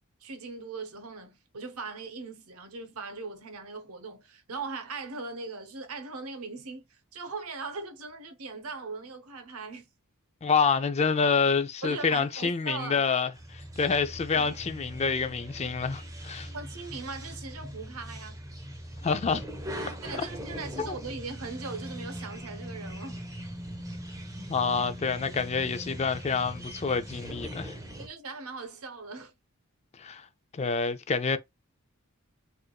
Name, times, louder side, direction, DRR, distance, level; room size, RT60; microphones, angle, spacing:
voice 1, 0.2-9.9 11.8-13.0 14.3-14.6 16.5-18.4 20.0-23.2 28.0-29.3, right 4 dB, 70° right, 0.9 m, -40 dB
voice 2, 10.4-16.5 19.0-19.4 20.1-20.2 20.8-20.9 24.5-27.8 30.0-30.2 30.5-31.4, left 5 dB, 30° left, 0.4 m, -27 dB
sound 1, 13.3-28.1, equal, 15° right, 0.7 m, -40 dB
4.6 x 2.5 x 2.3 m
head